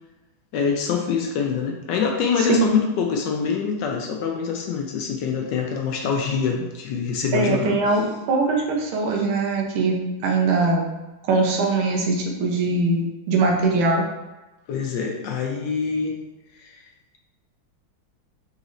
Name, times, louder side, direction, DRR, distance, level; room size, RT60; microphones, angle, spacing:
voice 1, 0.5-7.8 14.7-16.2 16.6-16.8, left 6 dB, 75° left, 2 dB, 1.0 m, -25 dB
voice 2, 7.3-10.9 11.3-14.1, right 3 dB, 80° right, 0 dB, 1.6 m, -21 dB
4.0 x 4.0 x 2.5 m, 1.1 s
omnidirectional pair, 2.3 m